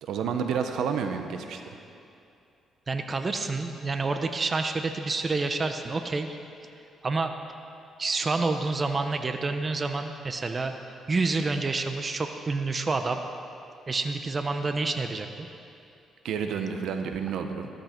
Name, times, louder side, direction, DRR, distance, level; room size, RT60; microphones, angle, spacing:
voice 1, 0.0-1.6 16.2-17.7, right 6 dB, 80° right, 6 dB, 1.0 m, -30 dB
voice 2, 2.9-6.4 7.0-7.3 8.0-10.7 11.1-13.2 13.9-15.5, right 3 dB, 35° right, 6 dB, 0.9 m, -28 dB
15.0 x 13.5 x 4.5 m, 2.6 s
cardioid pair, 90°, 0 cm